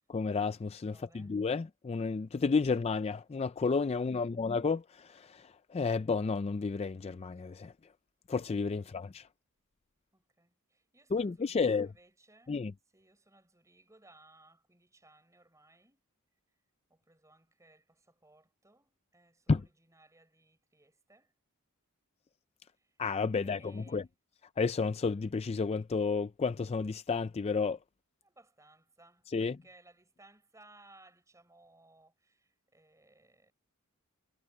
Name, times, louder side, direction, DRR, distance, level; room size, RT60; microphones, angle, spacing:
voice 1, 0.1-4.8 5.7-7.7 8.3-9.2 11.1-11.9 12.5-12.7 19.5-19.6 23.0-24.0 24.6-27.8 29.3-29.5, left 4 dB, 30° left, 0.3 m, -31 dB
voice 2, 0.9-1.4 3.9-4.4 8.8-9.0 10.1-12.6 12.9-16.0 16.9-21.3 22.8-23.0 23.3-24.1 28.2-33.5, right 2 dB, 15° right, 5.8 m, -62 dB
head